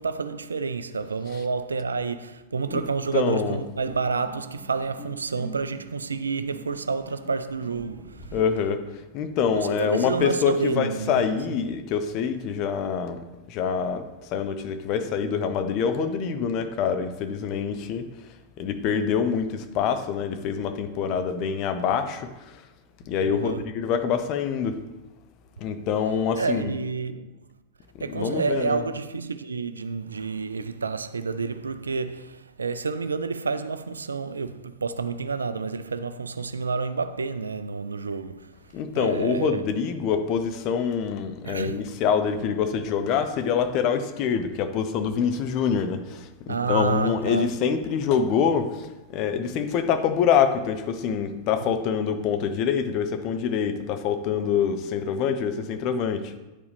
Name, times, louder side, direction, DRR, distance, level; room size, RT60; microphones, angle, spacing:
voice 1, 0.0-8.4 9.5-11.6 23.2-23.7 26.3-27.5 28.0-39.6 41.4-42.0 46.5-47.6, right 4 dB, 75° right, 0.3 m, -29 dB
sound 1, 2.7-8.4, right 2 dB, 5° left, 1.5 m, -45 dB
voice 2, 3.1-3.5 8.3-18.1 18.6-22.6 23.1-24.8 25.6-26.7 28.1-28.8 38.7-56.4, left 7 dB, 40° left, 0.6 m, -25 dB
9.7 x 4.7 x 3.3 m
figure-of-eight pair, 90°, 0 cm